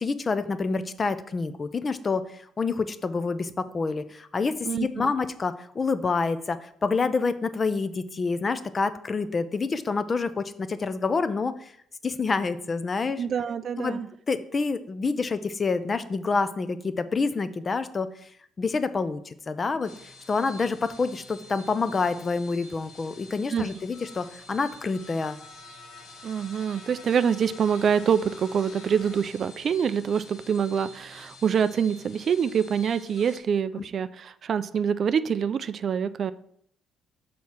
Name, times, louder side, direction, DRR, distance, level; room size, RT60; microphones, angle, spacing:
voice 1, 0.0-11.7 12.0-13.2 13.8-14.0 14.3-18.1 18.6-19.9 20.3-25.4 33.8-33.9, left 4 dB, 25° left, 13 dB, 0.4 m, -27 dB
voice 2, 4.6-5.1 13.2-14.1 23.5-23.7 26.2-36.3, right 7 dB, 45° right, 14 dB, 0.3 m, -25 dB
sound 1, 19.7-33.4, left 2 dB, 60° left, 1.2 m, -48 dB
6.5 x 4.2 x 5.9 m, 0.67 s
cardioid pair, 140°, 0 cm